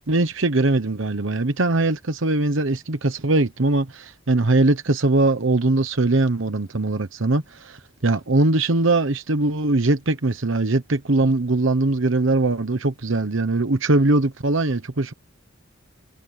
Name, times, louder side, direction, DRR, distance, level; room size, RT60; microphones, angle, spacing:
voice 1, 0.1-15.1, right 2 dB, 70° right, 1.1 m, -21 dB
head